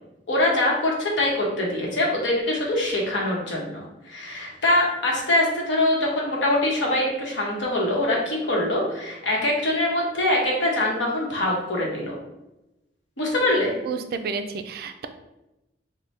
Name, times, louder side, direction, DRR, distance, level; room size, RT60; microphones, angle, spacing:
voice 1, 0.3-12.2 13.2-13.8, left 1 dB, 80° left, -2 dB, 1.0 m, -23 dB
voice 2, 13.8-15.1, right 5 dB, 55° right, 8 dB, 0.3 m, -30 dB
4.2 x 2.1 x 3.2 m, 0.95 s
head